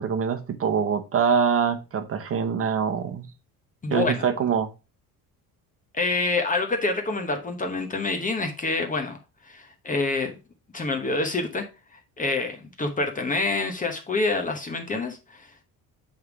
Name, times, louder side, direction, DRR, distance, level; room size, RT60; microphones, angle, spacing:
voice 1, 0.0-3.3 3.9-4.7, right 6 dB, 35° right, 0.9 m, -24 dB
voice 2, 3.8-4.3 5.9-9.2 9.4-10.4 10.7-11.6 11.9-15.6, left 3 dB, 20° left, 0.9 m, -27 dB
7.8 x 3.5 x 4.7 m
cardioid pair, 150°, 38 cm